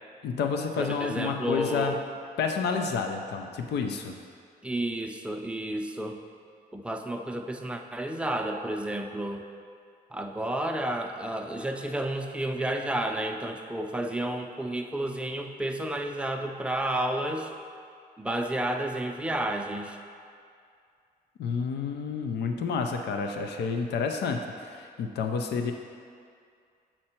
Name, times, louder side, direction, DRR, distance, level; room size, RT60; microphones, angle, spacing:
voice 1, 0.2-1.9 2.4-4.1 21.4-25.7, left 5 dB, 80° left, 4 dB, 0.5 m, -30 dB
voice 2, 0.8-2.0 4.6-6.2 6.7-9.4 10.1-17.5 18.2-20.0, right 1 dB, 5° right, 3 dB, 0.5 m, -31 dB
7.6 x 4.4 x 4.4 m, 2.3 s
cardioid pair, 100°, 17 cm